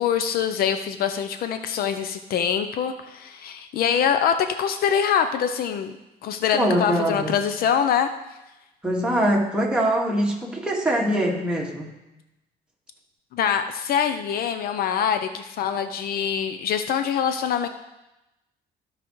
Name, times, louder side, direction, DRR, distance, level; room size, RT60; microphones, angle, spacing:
voice 1, 0.0-5.9 6.2-8.1 13.3-17.7, left 8 dB, 60° left, 9 dB, 0.5 m, -24 dB
voice 2, 6.5-7.4 8.8-11.9, right 1 dB, 5° right, -3 dB, 1.8 m, -23 dB
14.5 x 4.9 x 3.1 m, 0.96 s
cardioid pair, 110°, 17 cm